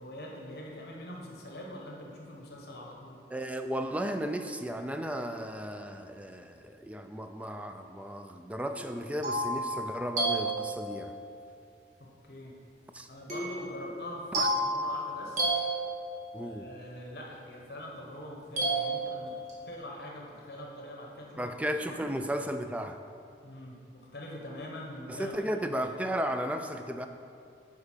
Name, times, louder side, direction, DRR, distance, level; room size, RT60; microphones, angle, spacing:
voice 1, 0.0-3.2 12.0-12.5 13.1-15.5 16.4-19.3 19.7-22.1 23.4-25.5 25.8-25.9, left 1 dB, 60° left, -2 dB, 1.2 m, -43 dB
voice 2, 3.3-11.1 12.9-13.1 14.4-14.5 16.3-16.7 21.4-23.0 25.1-27.1, equal, 10° right, 7 dB, 0.3 m, -34 dB
sound 1, 8.7-11.2 13.3-16.5 18.6-19.7, right 1 dB, 45° right, 1.8 m, -32 dB
8.0 x 5.0 x 5.6 m, 2.5 s
head